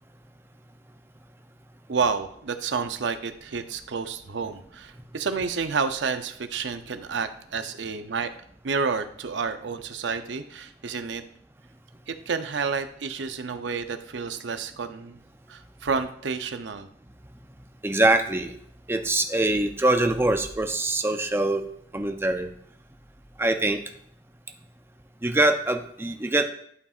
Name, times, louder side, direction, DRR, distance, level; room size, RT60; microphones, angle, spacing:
voice 1, 1.9-8.3 8.6-11.2 12.1-15.2 15.5-16.9, right 5 dB, 85° right, 9 dB, 0.6 m, -30 dB
voice 2, 17.8-18.5 18.9-21.6 21.9-22.5 23.4-23.8 25.2-26.4, right 2 dB, 15° right, 6 dB, 0.6 m, -23 dB
11.5 x 5.6 x 2.4 m, 0.66 s
head